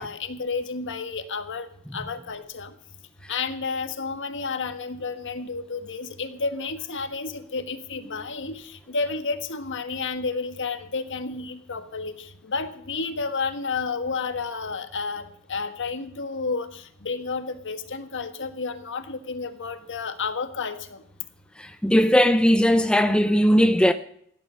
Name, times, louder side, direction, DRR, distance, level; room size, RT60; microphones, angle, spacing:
voice 1, 0.0-2.7 3.3-21.0, left 4 dB, 55° left, 1.5 m, -31 dB
voice 2, 21.6-23.9, equal, 5° left, 0.5 m, -18 dB
16.5 x 11.5 x 6.3 m
head